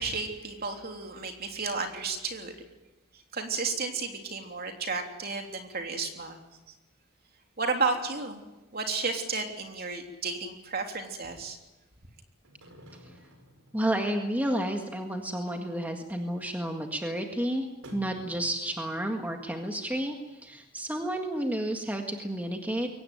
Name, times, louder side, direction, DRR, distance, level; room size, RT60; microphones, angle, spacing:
voice 1, 0.0-2.5 3.3-6.4 7.6-8.4 8.7-11.6, right 4 dB, 45° right, 3 dB, 3.3 m, -32 dB
sound 1, 12.4-14.5 14.8-14.9 15.2-15.3 15.5-15.8 16.2-16.3 17.8-19.7 20.0-20.1 20.5-20.6 20.9-21.0, equal, 75° right, 4.5 m, -52 dB
voice 2, 13.7-17.7 17.9-22.9, right 1 dB, 10° right, 3 dB, 1.8 m, -31 dB
23.0 x 18.0 x 9.4 m, 1.1 s
head